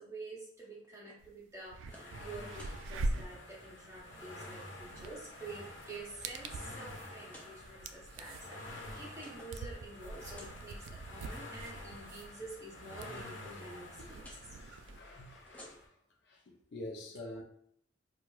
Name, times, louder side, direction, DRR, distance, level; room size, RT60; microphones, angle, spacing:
voice 1, 0.0-14.6, right 2 dB, 15° right, 0.7 m, -48 dB
sound 1, 0.6-1.2 1.6-2.2 2.4-2.8 3.5-3.7 3.9-4.5 5.2-5.7 6.2-6.3 7.2-7.5 8.3-9.7 10.0-10.6 11.5-12.2 14.2-14.4 15.3-16.1, equal, 10° left, 0.3 m, -57 dB
sound 2, 1.2-1.3 1.6-15.0, right 2 dB, 85° right, 0.3 m, -44 dB
sound 3, 1.9-15.9, left 1 dB, 85° left, 1.0 m, -49 dB
voice 2, 14.4-15.9 16.2-17.4, left 1 dB, 65° left, 0.6 m, -47 dB
4.4 x 2.3 x 2.3 m
head